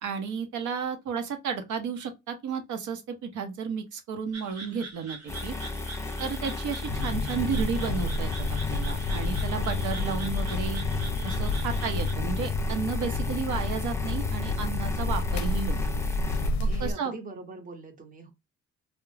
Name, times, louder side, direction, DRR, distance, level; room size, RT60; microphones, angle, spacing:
voice 1, 0.0-5.5 6.2-8.3 8.7-10.8 11.2-15.8 16.6-17.1, right 6 dB, 75° right, 0.7 m, -33 dB
sound 1, 4.3-12.1, right 3 dB, 55° right, 1.1 m, -43 dB
sound 2, 5.3-16.5, left 3 dB, 10° left, 0.5 m, -35 dB
sound 3, 6.9-16.9, left 2 dB, 65° left, 0.5 m, -30 dB
voice 2, 16.6-18.3, right 3 dB, 25° right, 0.7 m, -42 dB
2.3 x 2.1 x 3.1 m
cardioid pair, 90°, 30 cm